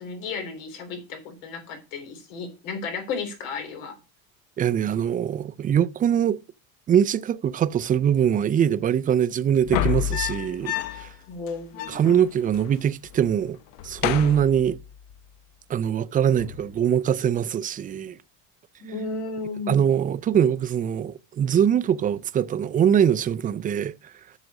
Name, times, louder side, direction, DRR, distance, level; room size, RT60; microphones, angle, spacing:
voice 1, 0.0-4.0 11.3-12.2 18.8-19.9, left 4 dB, 90° left, 3.5 m, -34 dB
voice 2, 4.6-6.4 6.9-11.1 11.9-13.6 13.8-14.8 15.7-18.2 19.7-23.9, right 9 dB, 25° right, 0.4 m, -22 dB
sound 1, 9.6-11.2 11.5-11.6 11.7-12.7 13.0-13.4 13.7-15.1 16.4-16.8, left 11 dB, 65° left, 0.8 m, -30 dB
7.8 x 6.4 x 5.3 m
cardioid pair, 125°, 38 cm